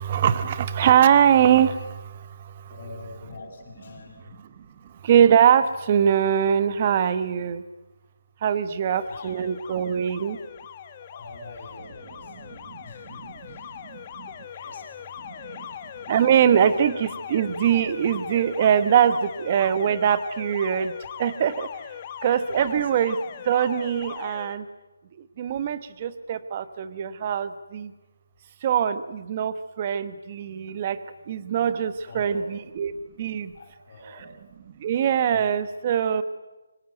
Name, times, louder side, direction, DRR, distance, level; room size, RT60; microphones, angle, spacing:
voice 1, 0.0-1.8 5.1-7.6 8.4-10.4 16.1-19.2 19.4-20.9 21.2-21.7 22.2-23.2 23.5-24.6 25.4-27.9 28.6-31.0 31.3-32.9 33.2-33.5 34.8-36.2, right 9 dB, 20° right, 13 dB, 1.1 m, -22 dB
voice 2, 2.6-4.4 9.1-9.6 11.1-13.8 14.5-15.7 16.1-16.2 22.5-22.9 32.1-32.5 33.5-34.3 35.3-35.5, left 2 dB, 35° left, 1 dB, 7.3 m, -44 dB
Alarm, 8.9-24.6, left 9 dB, 20° left, 1.1 m, -40 dB
25.5 x 25.5 x 9.1 m, 1.0 s
hypercardioid pair, 175°, 0 cm